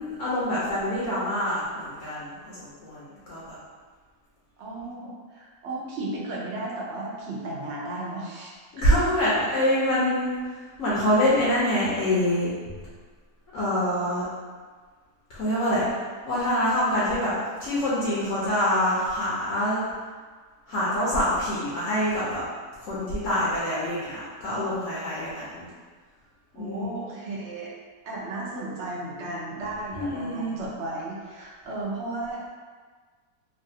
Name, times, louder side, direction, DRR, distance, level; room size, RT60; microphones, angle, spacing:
voice 1, 0.0-3.6 8.7-12.5 13.5-14.3 15.3-15.8 16.3-19.8 20.7-22.4 22.8-25.7 26.6-26.9 29.9-30.5, equal, 60° left, -8 dB, 0.9 m, -25 dB
voice 2, 4.6-8.5 26.5-27.7 28.0-32.5, right 2 dB, 60° right, -5 dB, 0.8 m, -34 dB
3.1 x 2.4 x 2.7 m, 1.5 s
omnidirectional pair, 1.7 m